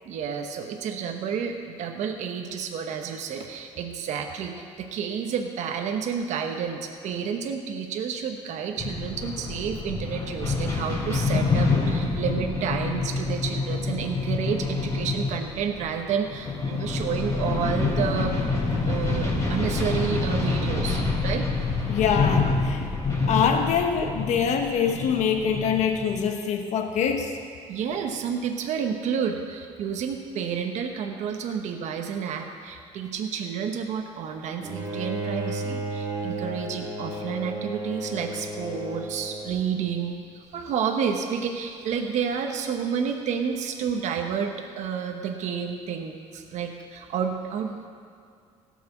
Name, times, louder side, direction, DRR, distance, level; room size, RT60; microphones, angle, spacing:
voice 1, 0.0-18.4 18.9-21.5 27.7-40.2 40.5-47.9, right 7 dB, 70° right, 4 dB, 1.1 m, -30 dB
sound 1, 8.8-26.3, left 3 dB, 25° left, 3.6 m, -27 dB
voice 2, 21.9-22.8 23.3-27.4, left 7 dB, 65° left, 4 dB, 1.1 m, -24 dB
Bowed string instrument, 34.6-39.8, right 2 dB, 30° right, 2.6 m, -33 dB
16.5 x 6.1 x 7.1 m, 2.3 s
cardioid pair, 125°, 12 cm